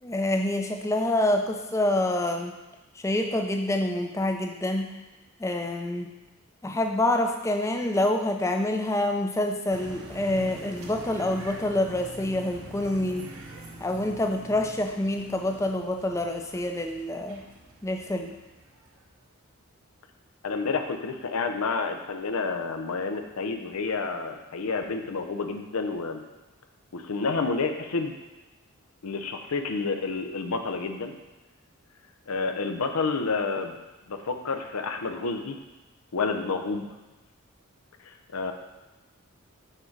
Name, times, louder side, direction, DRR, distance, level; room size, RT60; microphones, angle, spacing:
voice 1, 0.0-2.5 3.0-4.9 5.4-6.1 6.6-13.3 13.8-17.4 17.8-18.3, left 1 dB, 15° left, 4 dB, 0.4 m, -27 dB
sound 1, 9.7-19.1, right 2 dB, 80° right, 1.0 m, -45 dB
voice 2, 20.4-26.2 26.9-28.1 29.0-31.2 32.3-33.8 34.1-35.6 36.1-36.9 38.0-38.5, left 4 dB, 90° left, 5 dB, 0.6 m, -29 dB
6.6 x 3.8 x 4.6 m, 1.1 s
head